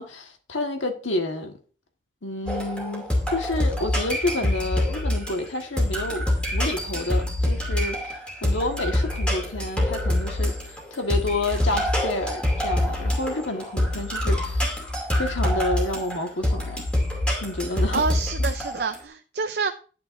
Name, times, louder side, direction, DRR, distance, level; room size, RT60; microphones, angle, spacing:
voice 1, 0.0-1.6 2.2-14.6 15.2-16.8 17.4-18.0, left 2 dB, 90° left, 4 dB, 1.5 m, -29 dB
sound 1, 2.5-19.0, left 1 dB, 5° left, 2.5 m, -25 dB
voice 2, 17.7-19.7, right 4 dB, 55° right, 7 dB, 0.5 m, -28 dB
10.5 x 9.5 x 2.6 m, 0.39 s
head